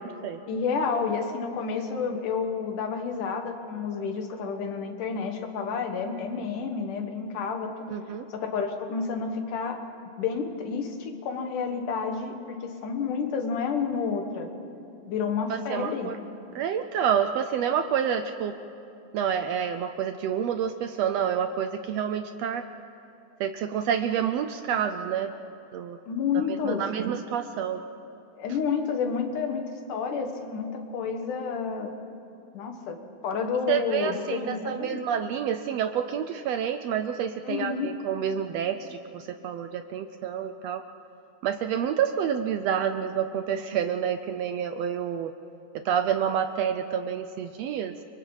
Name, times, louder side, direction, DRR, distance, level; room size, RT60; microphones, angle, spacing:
voice 1, 0.5-7.9 8.3-9.8 10.2-14.5 15.1-16.1 26.1-26.8 28.4-31.9 32.5-35.0 37.4-37.9, left 5 dB, 90° left, 4 dB, 3.1 m, -30 dB
voice 2, 7.9-8.3 15.5-16.2 16.5-18.6 19.1-22.6 23.4-25.3 25.7-26.0 26.3-27.8 33.7-40.8 41.4-45.3 45.8-47.9, right 8 dB, 75° right, 9 dB, 1.5 m, -28 dB
29.5 x 24.5 x 4.1 m, 2.7 s
omnidirectional pair, 3.5 m